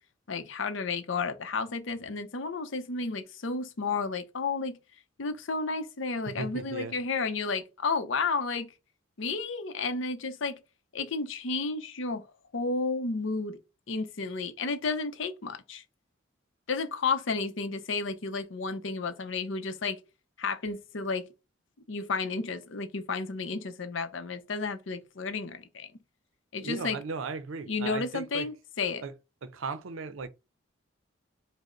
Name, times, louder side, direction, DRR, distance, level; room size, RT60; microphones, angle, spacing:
voice 1, 0.3-4.8 5.2-8.7 9.2-10.6 10.9-12.3 12.5-13.6 13.9-15.8 16.7-20.0 20.4-21.3 21.9-25.9 26.5-27.0 27.7-29.0, left 4 dB, 70° left, 0.6 m, -32 dB
voice 2, 6.3-6.9 26.6-28.5 29.0-29.1 29.4-30.3, right 4 dB, 85° right, 0.5 m, -36 dB
5.1 x 2.1 x 3.8 m
head